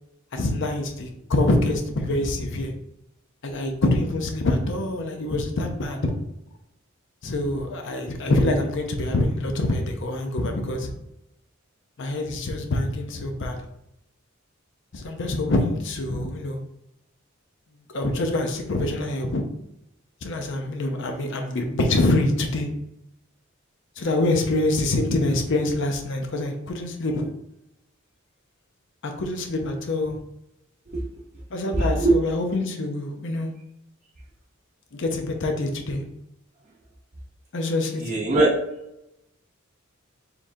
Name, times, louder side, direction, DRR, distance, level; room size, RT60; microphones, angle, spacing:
voice 1, 0.3-2.7 3.4-6.1 7.2-10.9 12.0-13.6 14.9-16.6 17.9-19.4 20.2-22.7 24.0-27.3 29.0-30.2 31.5-33.5 34.9-36.0 37.5-38.0, left 2 dB, 60° left, 4 dB, 0.6 m, -25 dB
voice 2, 31.7-32.1 38.0-38.5, right 2 dB, 40° right, -8 dB, 0.8 m, -20 dB
4.5 x 3.6 x 2.6 m, 0.83 s
head